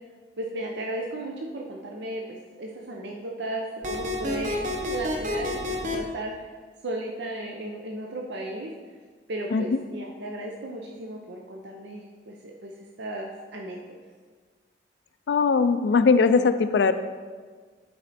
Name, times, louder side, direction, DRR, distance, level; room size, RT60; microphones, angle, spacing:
voice 1, 0.4-6.3 6.8-8.7 9.3-12.7 13.0-13.8, right 1 dB, 90° right, 0 dB, 0.7 m, -35 dB
sound 1, 3.8-6.0, left 2 dB, 45° right, 0.9 m, -29 dB
voice 2, 15.3-16.9, left 5 dB, 85° left, 11 dB, 0.4 m, -20 dB
10.5 x 4.3 x 4.2 m, 1.5 s
head